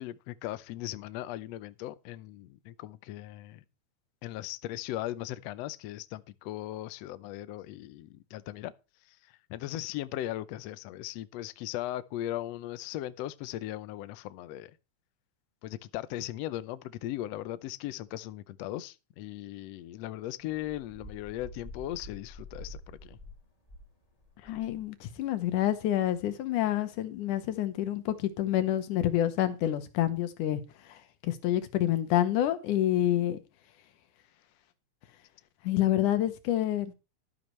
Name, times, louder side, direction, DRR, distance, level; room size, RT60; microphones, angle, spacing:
voice 1, 0.0-3.6 4.2-8.7 9.5-14.8 15.6-23.2, left 14 dB, 75° left, 1.6 m, -38 dB
sound 1, 20.4-23.9 24.2-25.5 25.8-26.3, left 1 dB, 15° left, 2.1 m, -48 dB
voice 2, 24.4-30.6 30.9-33.4 35.6-36.9, left 12 dB, 90° left, 2.6 m, -28 dB
12.5 x 12.5 x 3.2 m
omnidirectional pair, 3.5 m